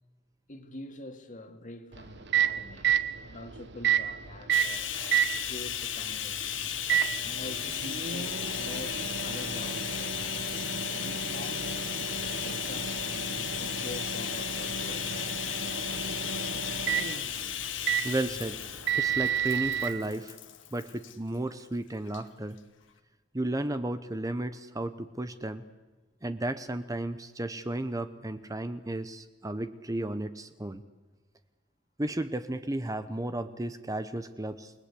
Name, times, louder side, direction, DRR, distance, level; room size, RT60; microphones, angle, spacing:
voice 1, 0.5-6.8 7.2-10.3 10.9-11.9 12.4-15.3 17.3-17.6, left 1 dB, 40° left, 2.4 m, -45 dB
Microwave oven, 1.9-19.9, right 8 dB, 65° right, 1.3 m, -32 dB
Bathtub (filling or washing), 4.5-21.2 22.1-22.2 22.6-22.7, left 10 dB, 70° left, 1.8 m, -35 dB
voice 2, 18.0-18.6 18.9-20.4 20.7-22.6 23.3-25.6 26.2-30.8 32.0-34.7, right 1 dB, 20° right, 0.9 m, -33 dB
29.0 x 20.0 x 8.4 m
head